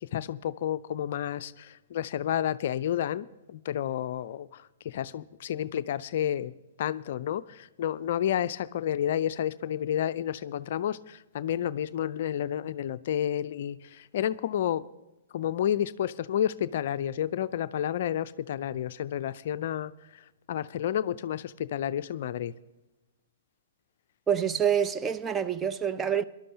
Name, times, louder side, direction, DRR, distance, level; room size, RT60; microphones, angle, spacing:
voice 1, 0.0-6.5 6.8-14.8 15.3-22.5, left 10 dB, 55° left, 0.4 m, -30 dB
voice 2, 24.3-26.2, right 8 dB, 15° right, 0.5 m, -27 dB
24.0 x 12.0 x 2.8 m
figure-of-eight pair, 115°, 0 cm